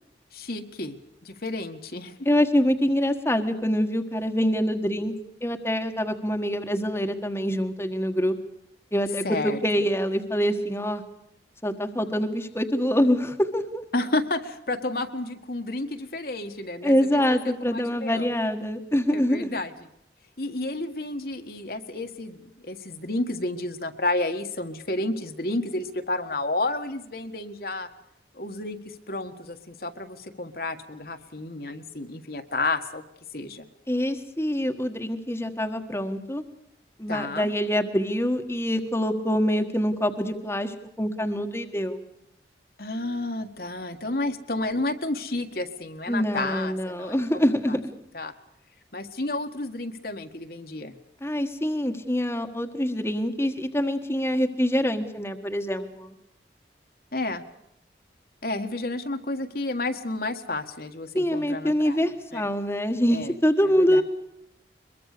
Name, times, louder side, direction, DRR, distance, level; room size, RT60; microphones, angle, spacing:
voice 1, 0.3-1.0 1.2-2.1 9.2-9.6 13.9-17.4 17.7-18.3 19.1-19.7 20.4-27.9 28.3-33.0 33.3-33.7 37.1-37.5 42.8-47.2 47.7-47.8 48.1-48.3 48.9-50.9 57.1-57.4 58.4-62.4 63.1-63.3 63.8-64.0, left 2 dB, 55° left, 6 dB, 1.8 m, -31 dB
voice 2, 2.2-5.1 5.4-8.4 8.9-11.0 11.6-13.8 16.8-19.6 33.9-36.4 37.0-42.0 46.1-47.9 51.2-56.1 61.1-64.0, equal, 15° left, 6 dB, 1.4 m, -25 dB
23.0 x 22.5 x 6.8 m, 0.77 s
head